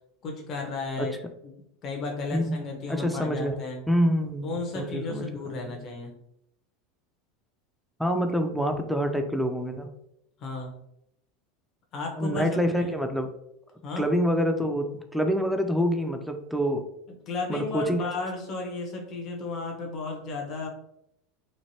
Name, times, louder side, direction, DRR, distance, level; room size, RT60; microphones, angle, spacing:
voice 1, 0.2-1.2 1.4-1.5 1.8-3.9 4.4-6.1 10.4-10.8 11.9-12.9 13.8-14.1 17.1-20.7, left 3 dB, 45° left, 1 dB, 0.8 m, -34 dB
voice 2, 2.3-3.5 3.9-5.7 8.0-9.9 12.2-13.3 14.0-16.8 17.5-18.0, equal, ahead, 5 dB, 0.5 m, -26 dB
3.2 x 2.5 x 2.7 m, 0.78 s
hypercardioid pair, 90°, 0 cm